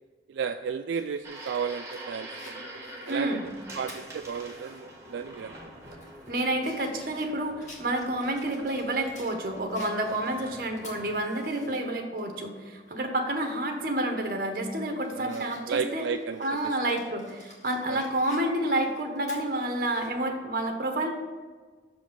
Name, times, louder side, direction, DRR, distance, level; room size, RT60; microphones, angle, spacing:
voice 1, 0.3-2.7 3.1-3.3 3.7-5.5 5.8-6.0 11.6-11.7 15.1-16.7 17.9-18.1, right 6 dB, 85° right, 8 dB, 0.3 m, -33 dB
Fire, 0.9-4.8 5.2-5.3 5.8-9.4 9.7-11.8 12.2-12.3 13.8-14.0 14.5-20.1, left 2 dB, 40° left, 1.6 m, -52 dB
sound 1, 1.2-11.2, right 1 dB, 15° right, 1.2 m, -46 dB
voice 2, 3.1-3.5 6.3-16.0 16.4-21.1, right 1 dB, 50° right, 4 dB, 1.1 m, -29 dB
6.5 x 5.1 x 6.8 m, 1.4 s
head